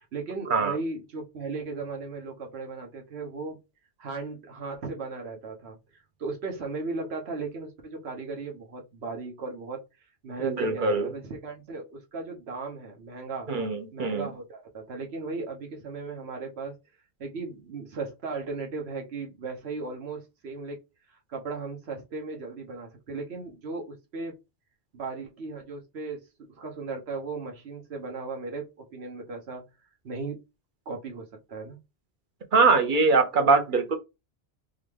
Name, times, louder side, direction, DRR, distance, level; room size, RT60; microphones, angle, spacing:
voice 1, 0.0-3.6 4.0-5.8 6.2-9.8 10.2-13.5 13.9-16.8 17.2-20.8 21.1-24.3 24.9-26.2 26.6-29.6 30.0-30.4 30.9-31.8, right 3 dB, 75° right, 1.3 m, -36 dB
voice 2, 10.4-11.1 13.5-14.3 32.5-34.0, right 4 dB, 55° right, 0.9 m, -22 dB
3.9 x 2.4 x 3.2 m
omnidirectional pair, 1.1 m